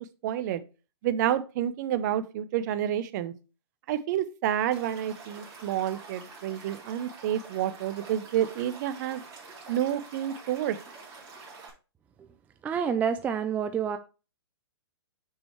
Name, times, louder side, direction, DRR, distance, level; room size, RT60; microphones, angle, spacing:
voice 1, 0.2-0.6 1.0-3.3 3.9-9.2 9.7-10.8, right 11 dB, 45° right, 0.8 m, -29 dB
Stream / Liquid, 4.7-11.7, right 4 dB, 25° right, 3.0 m, -47 dB
voice 2, 12.6-14.0, right 7 dB, 10° right, 0.4 m, -28 dB
6.5 x 6.0 x 3.1 m
hypercardioid pair, 135°, 14 cm